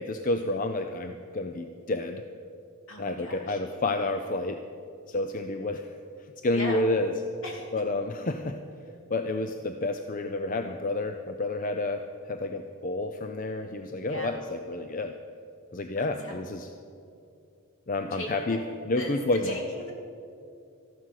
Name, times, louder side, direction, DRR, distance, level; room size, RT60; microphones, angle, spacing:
voice 1, 0.0-2.2 3.0-4.6 5.1-5.9 6.2-7.1 7.7-8.6 9.1-15.2 15.7-16.7 17.9-18.6 18.9-19.6, left 2 dB, 35° left, 7 dB, 0.5 m, -30 dB
voice 2, 2.9-3.6 6.5-6.8 7.4-7.7 14.0-14.3 16.0-16.4 18.1-18.6 19.0-19.9, left 1 dB, 65° left, 0 dB, 2.8 m, -38 dB
14.0 x 11.5 x 6.5 m, 2.6 s
head